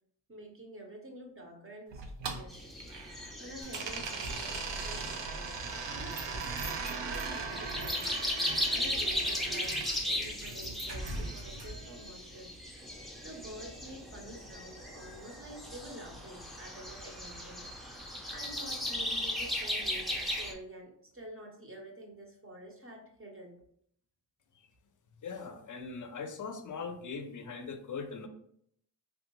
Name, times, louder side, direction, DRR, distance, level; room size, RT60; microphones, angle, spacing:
voice 1, 0.3-2.6 3.4-8.1 8.7-12.6 13.2-17.7 18.3-23.6, right 1 dB, 30° right, 0 dB, 0.9 m, -48 dB
sound 1, 1.9-3.3 3.7-9.9 11.0-12.1, right 5 dB, 80° right, 0.6 m, -40 dB
sound 2, 2.5-20.5, left 1 dB, ahead, 0.5 m, -37 dB
sound 3, 3.6-11.9, right 1 dB, 60° right, 1.1 m, -44 dB
voice 2, 25.2-28.3, left 5 dB, 45° left, 7 dB, 0.5 m, -40 dB
3.5 x 2.4 x 3.0 m, 0.68 s
cardioid pair, 85°, 44 cm